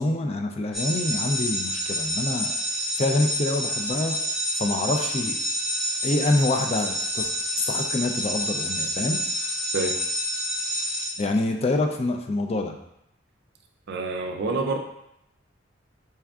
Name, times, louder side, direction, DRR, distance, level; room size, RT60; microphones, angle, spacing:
voice 1, 0.0-2.6 3.0-4.2 4.6-5.4 6.0-7.3 7.7-9.2 11.2-12.7, left 2 dB, 30° left, 4 dB, 0.4 m, -26 dB
sound 1, 0.7-11.1, equal, ahead, 0.9 m, -28 dB
voice 2, 13.9-14.8, right 3 dB, 60° right, 4 dB, 0.4 m, -27 dB
4.4 x 3.5 x 2.3 m, 0.78 s
head